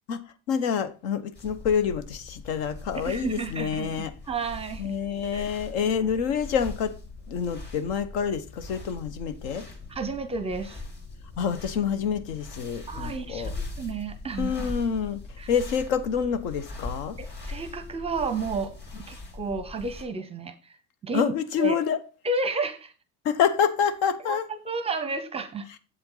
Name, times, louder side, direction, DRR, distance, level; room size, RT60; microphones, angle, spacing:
voice 1, 0.5-4.1 4.8-6.9 7.3-9.7 11.4-13.5 14.4-15.2 15.5-17.2 21.1-22.0 23.2-24.4, left 7 dB, 65° left, 1.1 m, -27 dB
sound 1, 1.4-20.0, left 3 dB, 30° left, 2.6 m, -40 dB
voice 2, 2.9-5.0 5.3-5.4 9.9-10.8 12.9-14.7 15.4-15.5 17.2-18.7 19.1-20.8 21.0-21.3 21.6-21.8 22.2-22.9 24.2-25.7, right 4 dB, 15° right, 0.7 m, -32 dB
7.8 x 7.8 x 3.9 m
supercardioid pair, 140°, 36 cm